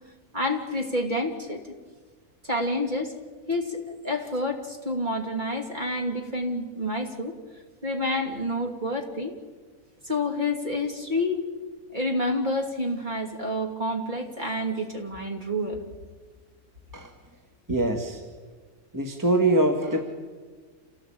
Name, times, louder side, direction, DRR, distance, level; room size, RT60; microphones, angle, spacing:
voice 1, 0.3-1.6 2.4-3.1 3.5-7.3 7.8-9.4 10.0-11.5 11.9-15.8, left 1 dB, 30° right, 2 dB, 3.0 m, -28 dB
voice 2, 17.7-18.2 18.9-20.0, right 1 dB, 10° right, 3 dB, 1.8 m, -23 dB
27.5 x 18.5 x 8.8 m, 1.5 s
omnidirectional pair, 1.6 m